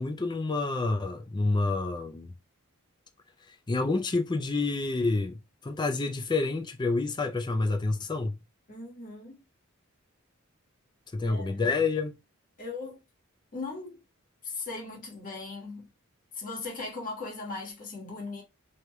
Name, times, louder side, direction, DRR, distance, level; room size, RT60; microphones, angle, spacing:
voice 1, 0.0-2.3 3.7-8.4 11.1-12.1, left 3 dB, 20° left, 0.4 m, -28 dB
voice 2, 8.7-9.4 11.3-11.7 12.6-13.0 13.5-14.0 14.4-15.9 16.3-18.4, left 3 dB, 40° left, 1.5 m, -38 dB
3.2 x 2.8 x 2.2 m
head